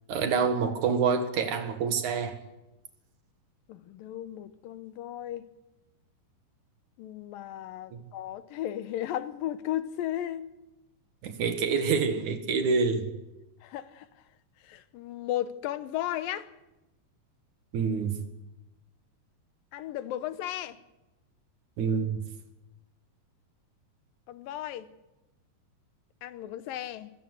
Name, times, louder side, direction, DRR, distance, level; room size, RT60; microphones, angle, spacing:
voice 1, 0.1-2.4 7.9-8.0 11.2-13.1 17.7-18.2 21.8-22.2, right 5 dB, 60° right, 3.0 m, -27 dB
voice 2, 3.7-5.5 7.0-10.5 13.6-14.1 14.6-16.5 19.7-20.8 24.3-24.9 26.2-27.1, left 12 dB, 80° left, 2.6 m, -35 dB
24.0 x 16.0 x 8.1 m
omnidirectional pair, 4.1 m